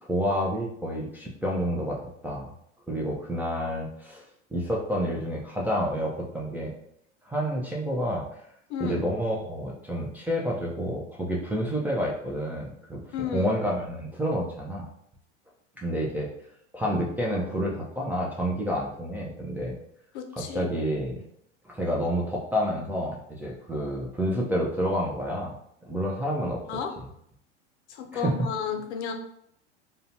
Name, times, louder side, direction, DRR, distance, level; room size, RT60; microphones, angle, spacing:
voice 1, 0.0-2.5 2.9-4.2 4.5-6.7 7.2-8.2 8.8-14.9 15.8-16.3 16.7-19.8 20.3-21.2 21.6-25.6 25.8-26.6 27.0-27.1 28.1-28.5, equal, 5° right, -5 dB, 0.4 m, -29 dB
voice 2, 13.1-13.5 20.1-20.7 26.7-26.9 27.9-29.1, left 7 dB, 70° left, 5 dB, 0.6 m, -32 dB
2.7 x 2.2 x 2.7 m, 0.72 s
hypercardioid pair, 90°, 36 cm